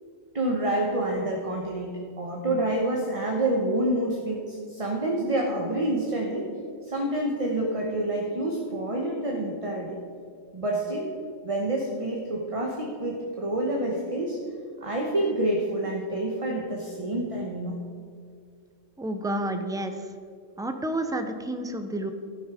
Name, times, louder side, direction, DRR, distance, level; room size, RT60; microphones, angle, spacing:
voice 1, 0.3-6.5 6.8-10.0 10.5-11.1 11.4-14.4 14.8-17.8, right 1 dB, 30° right, -1 dB, 1.0 m, -28 dB
voice 2, 19.0-19.9 20.6-22.1, right 1 dB, 5° right, 6 dB, 0.4 m, -30 dB
15.0 x 6.4 x 4.9 m, 2.2 s
omnidirectional pair, 1.2 m